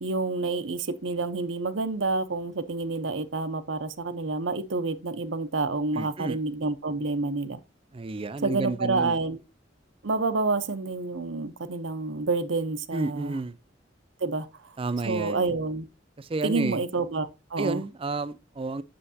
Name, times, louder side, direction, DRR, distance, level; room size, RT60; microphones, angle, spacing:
voice 1, 0.0-7.6 8.4-9.4 10.0-13.4 14.2-14.7 15.0-15.8 16.4-17.8, right 3 dB, 80° right, 0.8 m, -28 dB
voice 2, 5.9-6.4 7.9-9.2 12.9-13.6 14.8-15.5 16.2-16.8 17.6-18.8, right 3 dB, 30° right, 0.5 m, -31 dB
7.8 x 6.5 x 2.7 m
head